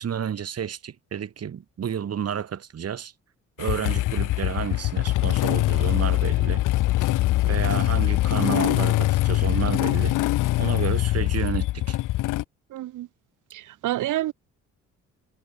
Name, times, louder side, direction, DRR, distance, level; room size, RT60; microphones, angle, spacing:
voice 1, 0.0-3.1 3.6-6.6 7.4-10.2 10.6-12.0, right 8 dB, 55° right, 4.5 m, -30 dB
Motorcycle / Engine starting, 3.6-12.4, left 16 dB, 90° left, 2.9 m, -23 dB
voice 2, 12.7-13.1 13.5-14.3, right 14 dB, 85° right, 2.4 m, -28 dB
cardioid pair, 90°, 30 cm